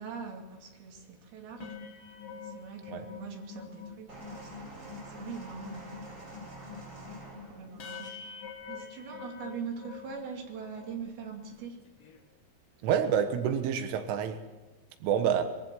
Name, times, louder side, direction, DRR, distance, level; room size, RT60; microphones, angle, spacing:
voice 1, 0.0-1.8 2.3-6.0 7.1-8.3 8.7-11.8, right 6 dB, 55° right, 2 dB, 4.2 m, -43 dB
sound 1, 1.5-11.0 11.4-11.6 11.8-12.2, left 6 dB, 60° left, 1.5 m, -46 dB
sound 2, 4.1-8.2 9.1-9.2, right 2 dB, 20° right, 8.0 m, -47 dB
voice 2, 12.8-14.4 15.0-15.4, right 8 dB, 85° right, 8 dB, 3.9 m, -27 dB
22.0 x 15.5 x 7.7 m, 1.1 s
omnidirectional pair, 5.5 m